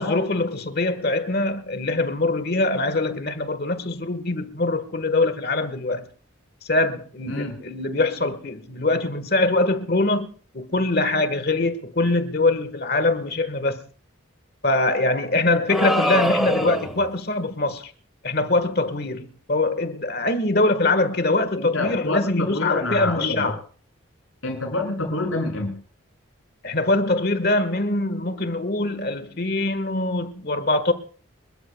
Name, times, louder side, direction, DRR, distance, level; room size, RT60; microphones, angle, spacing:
voice 1, 0.0-6.1 6.7-10.3 10.5-13.8 14.6-17.9 18.2-23.6 26.6-30.9, left 2 dB, 50° left, 1.5 m, -23 dB
sound 1, 15.7-17.1, equal, ahead, 1.7 m, -23 dB
voice 2, 21.6-23.5 24.4-25.8, left 2 dB, 80° left, 6.7 m, -27 dB
30.0 x 13.5 x 2.3 m
head